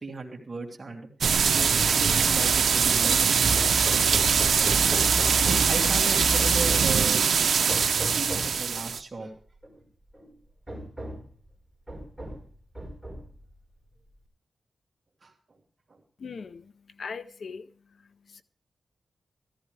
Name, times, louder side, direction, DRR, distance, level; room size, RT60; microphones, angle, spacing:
voice 1, 0.0-1.1 1.5-3.2 3.9-4.7 5.7-7.2 8.0-9.3 15.2-15.3 15.9-16.0, right 3 dB, 35° right, 2.7 m, -36 dB
sound 1, 1.2-9.0, right 6 dB, 90° right, 0.6 m, -22 dB
sound 2, 3.1-6.9, equal, 15° left, 1.0 m, -34 dB
Hammer, 3.6-5.8 6.4-7.3 7.7-8.6 9.6-9.7 10.1-10.3 10.7-11.3 11.9-12.5 12.8-13.4, equal, 5° right, 5.2 m, -36 dB
voice 2, 16.2-18.4, left 5 dB, 65° left, 0.6 m, -41 dB
14.5 x 14.5 x 3.3 m
wide cardioid pair, 145°, 0 cm